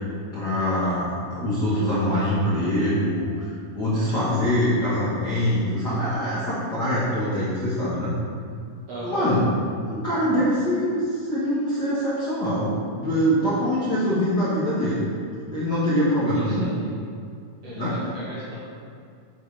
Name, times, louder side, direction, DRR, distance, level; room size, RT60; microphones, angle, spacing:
voice 1, 0.3-8.2 9.0-9.5 9.8-15.1 15.5-16.7 17.8-18.0, equal, 50° left, -11 dB, 1.3 m, -24 dB
voice 2, 8.9-9.3 16.3-16.9 17.6-18.6, right 1 dB, 50° right, -9 dB, 2.0 m, -36 dB
7.7 x 5.1 x 4.8 m, 2.3 s
omnidirectional pair, 4.2 m